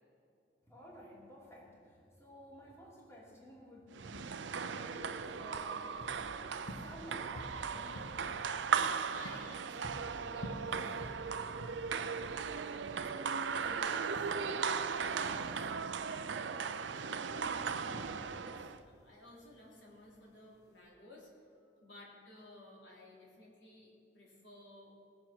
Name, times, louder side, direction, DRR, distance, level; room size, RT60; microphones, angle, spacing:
voice 1, 0.7-5.9 6.3-8.2, equal, 15° left, -5 dB, 3.0 m, -53 dB
sound 1, 3.9-18.8, right 6 dB, 90° right, 0.6 m, -37 dB
sound 2, 5.1-20.8, equal, 65° left, 1.4 m, -51 dB
voice 2, 9.1-10.7 13.5-14.3 15.0-21.3 21.8-24.9, left 1 dB, 90° left, -4 dB, 3.7 m, -56 dB
19.0 x 7.3 x 6.0 m, 2.7 s
head